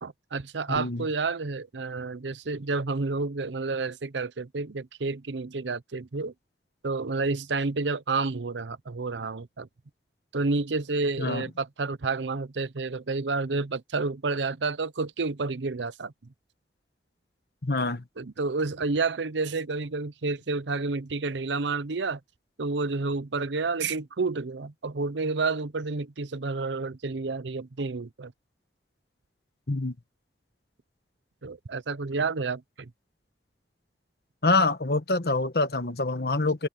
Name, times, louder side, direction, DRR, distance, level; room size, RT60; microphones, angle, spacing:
voice 1, 0.0-6.3 6.8-9.7 10.3-16.1 18.2-22.2 22.6-28.3 31.4-32.9, right 3 dB, 90° right, 0.7 m, -30 dB
voice 2, 0.7-1.0 11.2-11.4 17.6-18.0 29.7-29.9 34.4-36.7, left 3 dB, 60° left, 1.3 m, -26 dB
open air
head